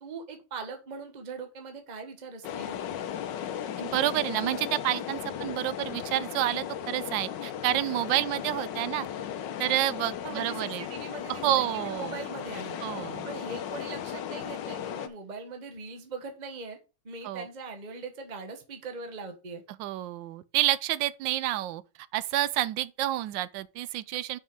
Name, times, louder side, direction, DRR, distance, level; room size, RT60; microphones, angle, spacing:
voice 1, 0.0-2.8 10.2-12.8 13.2-16.8 17.0-19.6, right 4 dB, 25° right, 1.2 m, -41 dB
sound 1, 2.4-15.1, left 9 dB, 75° left, 1.4 m, -36 dB
voice 2, 3.8-9.1 9.6-10.8 11.3-12.2 12.8-13.3 17.2-17.5 19.8-21.8 22.1-24.4, right 14 dB, 80° right, 1.3 m, -29 dB
5.8 x 5.5 x 5.1 m
omnidirectional pair, 2.0 m